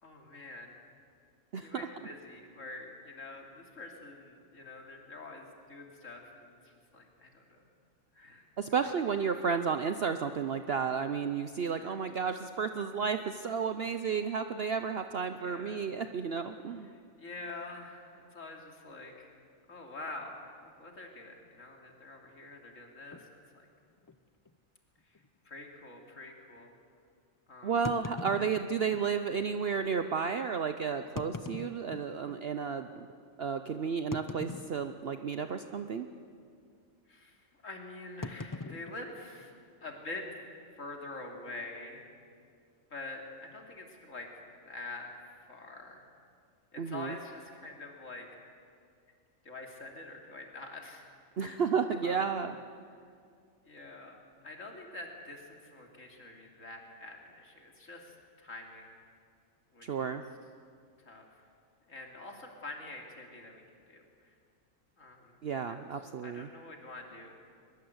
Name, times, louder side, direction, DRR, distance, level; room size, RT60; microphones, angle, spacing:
voice 1, 0.0-0.8 1.6-7.6 8.1-8.5 8.8-8.9 11.8-12.2 15.4-15.9 16.8-19.3 19.7-23.7 25.0-26.7 27.5-27.8 37.1-40.2 40.7-42.0 42.9-45.1 45.5-46.0 46.7-48.3 49.4-51.1 51.4-51.6 52.0-52.3 53.6-54.2 54.4-59.0 59.7-60.2 61.0-61.4 61.9-64.3 65.0-65.4 65.7-65.8 66.2-67.4, left 2 dB, 65° left, 1 dB, 3.1 m, -46 dB
voice 2, 1.5-1.9 8.6-16.9 27.6-33.1 33.4-36.1 46.8-47.2 51.4-52.5 59.8-60.2 65.4-66.5, right 6 dB, 55° right, 8 dB, 0.8 m, -32 dB
sound 1, 23.1-23.3 24.0-24.1 24.4-24.5 25.1-25.3 27.8-29.0 29.9-30.0 31.0-32.4 32.9-33.0 34.1-35.2 35.5-35.8 36.1-36.4 38.2-39.8, left 3 dB, 30° left, 0.3 m, -42 dB
22.0 x 22.0 x 8.0 m, 2.3 s
omnidirectional pair, 1.4 m